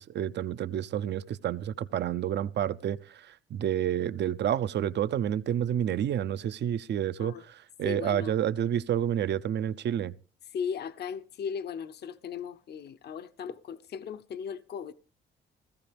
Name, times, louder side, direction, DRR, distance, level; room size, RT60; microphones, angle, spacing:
voice 1, 0.0-10.2, right 10 dB, 60° right, 0.7 m, -29 dB
voice 2, 7.8-8.4 10.5-14.9, left 7 dB, 55° left, 0.8 m, -37 dB
17.0 x 14.5 x 3.4 m
cardioid pair, 90°, 20 cm